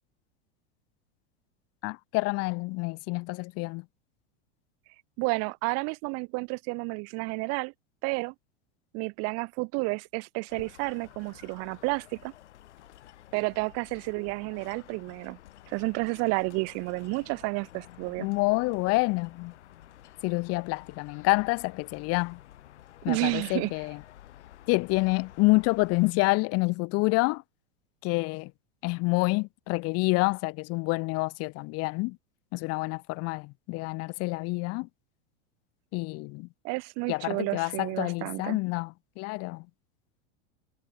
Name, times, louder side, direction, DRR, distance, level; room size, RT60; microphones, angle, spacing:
voice 1, 1.8-3.9 18.2-19.5 20.2-22.4 23.0-24.0 24.7-27.4 28.0-28.5 28.8-32.2 32.5-34.9 35.9-36.5 37.1-39.7, left 26 dB, 45° left, 2.1 m, -28 dB
voice 2, 5.2-7.7 8.0-8.3 8.9-12.3 13.3-15.4 15.7-18.3 23.1-23.7 36.6-38.6, right 31 dB, 45° right, 1.6 m, -31 dB
sound 1, 10.5-26.1, left 13 dB, 90° left, 4.9 m, -52 dB
supercardioid pair, 140°, 34 cm